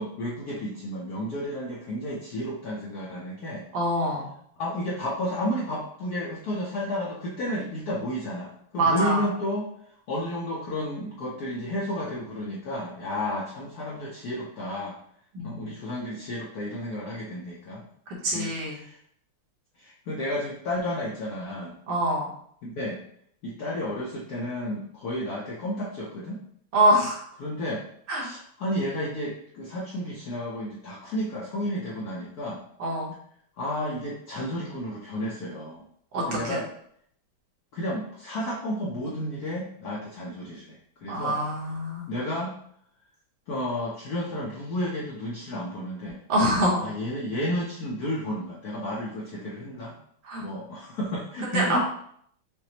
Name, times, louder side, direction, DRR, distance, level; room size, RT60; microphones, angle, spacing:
voice 1, 0.0-3.7 4.6-9.7 10.1-15.0 15.4-17.8 18.3-19.0 19.8-21.7 22.6-23.0 23.4-26.4 27.4-27.8 28.2-32.6 33.6-35.8 36.3-36.7 37.7-41.4 42.1-42.5 43.5-46.2 46.8-50.0 50.4-51.8, left 1 dB, 75° left, -4 dB, 0.9 m, -32 dB
voice 2, 3.7-4.3 8.8-9.3 15.3-15.7 18.1-18.8 21.9-22.3 26.7-27.3 28.1-28.3 32.8-33.1 36.1-36.6 41.1-42.1 46.3-46.8 50.2-50.4 51.4-51.8, right 1 dB, 65° right, -3 dB, 1.6 m, -25 dB
5.8 x 2.0 x 2.7 m, 0.65 s
omnidirectional pair, 2.3 m